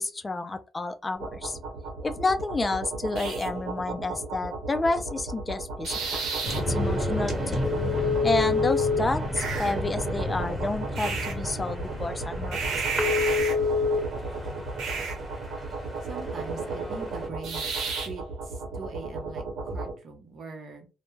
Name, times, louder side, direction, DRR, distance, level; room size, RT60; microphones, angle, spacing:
voice 1, 0.0-1.6 2.0-6.2 6.7-7.6 8.2-12.6, left 3 dB, 20° left, 0.3 m, -30 dB
sound 1, 1.1-19.9, right 4 dB, 85° right, 0.9 m, -33 dB
sound 2, 6.4-17.3, left 3 dB, 15° right, 1.3 m, -29 dB
voice 2, 16.1-17.7 18.0-18.2 18.7-20.9, right 4 dB, 50° right, 0.7 m, -41 dB
2.2 x 2.0 x 3.1 m
cardioid pair, 120°, 0 cm